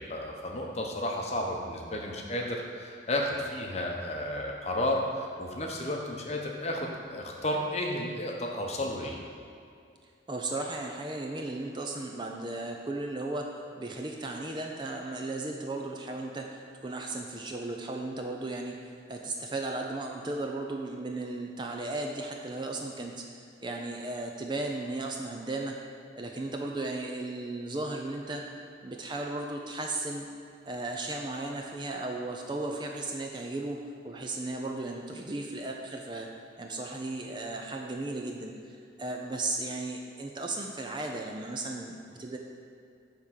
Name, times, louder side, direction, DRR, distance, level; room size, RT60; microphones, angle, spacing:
voice 1, 0.0-9.2, left 1 dB, 35° left, 0 dB, 0.8 m, -32 dB
voice 2, 10.3-13.5 13.8-18.8 19.1-23.2 23.6-25.7 26.2-28.4 28.8-30.3 30.7-33.8 34.0-36.3 36.6-42.4, right 2 dB, 25° right, 1 dB, 0.5 m, -35 dB
9.5 x 3.6 x 5.7 m, 2.4 s
head